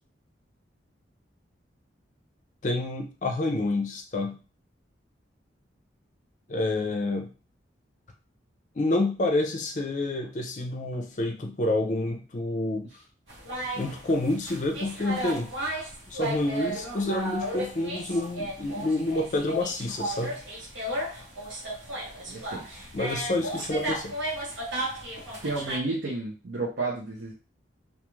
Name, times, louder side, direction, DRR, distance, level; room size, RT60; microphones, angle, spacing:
voice 1, 2.6-4.4 6.5-7.3 8.8-12.9 13.7-15.5 16.1-20.4 22.9-24.1, left 2 dB, 40° left, 4 dB, 0.4 m, -28 dB
sound 1, 13.3-25.8, right 1 dB, 90° right, 1.1 m, -34 dB
voice 2, 21.9-22.8 25.4-27.3, right 3 dB, 70° right, -3 dB, 0.6 m, -32 dB
2.4 x 2.4 x 3.1 m, 0.34 s
head